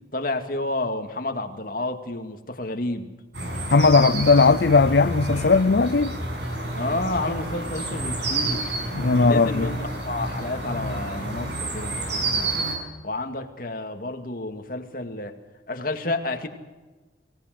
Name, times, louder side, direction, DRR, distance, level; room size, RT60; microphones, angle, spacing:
voice 1, 0.1-3.1 6.7-8.7 9.2-12.5 13.0-15.3 15.7-16.5, left 2 dB, 50° left, 2.2 m, -30 dB
sound 1, 3.3-12.7, right 2 dB, 70° right, 6.9 m, -29 dB
voice 2, 3.7-6.1 8.9-9.7, left 4 dB, 65° left, 0.6 m, -18 dB
24.0 x 17.5 x 7.9 m
head